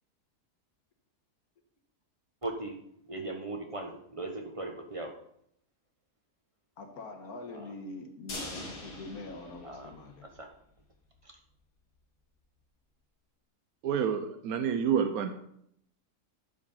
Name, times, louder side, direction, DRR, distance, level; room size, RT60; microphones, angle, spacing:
voice 1, 2.4-2.8 3.1-5.1 7.5-7.7 9.6-9.9 10.4-10.5, right 2 dB, 25° right, 3 dB, 1.0 m, -38 dB
voice 2, 6.8-10.3, left 2 dB, 70° left, 4 dB, 1.8 m, -43 dB
sound 1, 8.3-10.4 10.8-10.9 11.2-11.3, left 2 dB, 90° left, 2.8 m, -43 dB
voice 3, 13.8-15.3, right 7 dB, 70° right, 8 dB, 1.1 m, -28 dB
11.5 x 5.1 x 5.5 m, 0.72 s
omnidirectional pair, 1.7 m